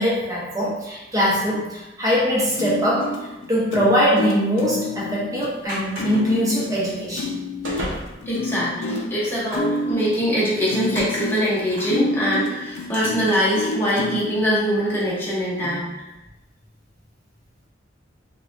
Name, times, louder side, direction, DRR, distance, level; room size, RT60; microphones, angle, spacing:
voice 1, 0.0-7.3, equal, 20° right, -6 dB, 0.8 m, -22 dB
sound 1, 2.6-14.4 15.0-15.1 15.6-15.8, left 2 dB, 85° left, 0.4 m, -29 dB
sound 2, 5.1-9.5, right 1 dB, 75° right, 0.7 m, -38 dB
sound 3, 5.6-6.5 6.8-6.9 7.3-7.4 9.2-10.0 10.4-12.0 12.7-13.5 14.0-14.1, equal, 50° right, 1.1 m, -37 dB
voice 2, 8.3-15.8, equal, 10° left, -8 dB, 0.8 m, -23 dB
3.3 x 2.2 x 2.5 m, 1.0 s
head